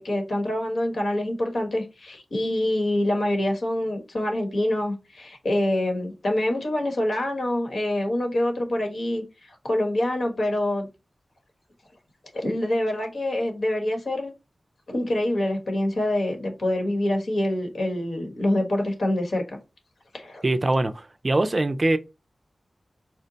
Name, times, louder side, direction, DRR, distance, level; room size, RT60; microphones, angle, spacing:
voice 1, 0.0-10.9 12.3-14.3 14.9-19.6 20.1-20.4, left 1 dB, 70° left, 1.3 m, -26 dB
voice 2, 20.4-22.0, right 2 dB, 35° right, 0.4 m, -23 dB
4.4 x 2.1 x 3.9 m
wide cardioid pair, 100°, 0 cm